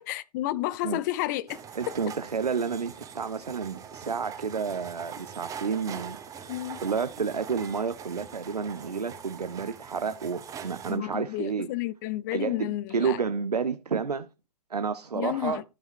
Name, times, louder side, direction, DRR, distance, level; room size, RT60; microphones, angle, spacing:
voice 1, 0.1-1.6 6.5-6.8 10.9-13.2 15.1-15.6, left 16 dB, 30° left, 0.5 m, -31 dB
sound 1, 1.5-11.0, right 7 dB, 15° right, 1.5 m, -43 dB
voice 2, 1.8-6.5 6.8-11.7 12.3-14.3 14.7-15.6, right 5 dB, 75° right, 0.9 m, -30 dB
13.5 x 5.5 x 4.5 m
figure-of-eight pair, 115°, 20 cm